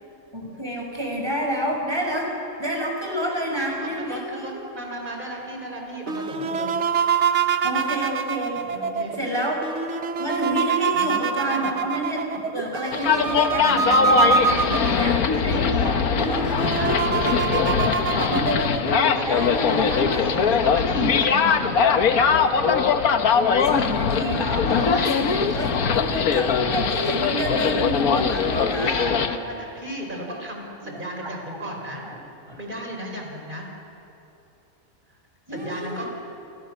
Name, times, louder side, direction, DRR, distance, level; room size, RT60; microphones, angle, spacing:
voice 1, 0.3-2.3 2.6-4.5 7.6-8.6 9.2-9.6 10.2-16.5 18.1-21.5 23.7-29.1 30.9-31.6 32.0-32.2 32.5-32.6 35.5-36.1, equal, 15° right, 0 dB, 5.5 m, -29 dB
voice 2, 3.8-6.7 7.7-7.9 8.7-9.1 10.9-11.1 11.4-11.6 13.6-13.8 14.2-17.6 18.9-21.6 24.7-25.2 28.2-32.0 32.6-33.7 35.5-36.1, right 1 dB, 35° right, 0 dB, 5.0 m, -35 dB
sound 1, 6.1-15.3 15.8-15.9 16.2-18.9, right 5 dB, 55° right, 1.3 m, -25 dB
sound 2, 12.9-29.4, left 6 dB, 90° left, 1.6 m, -21 dB
29.5 x 27.5 x 6.6 m, 3.0 s
omnidirectional pair, 1.5 m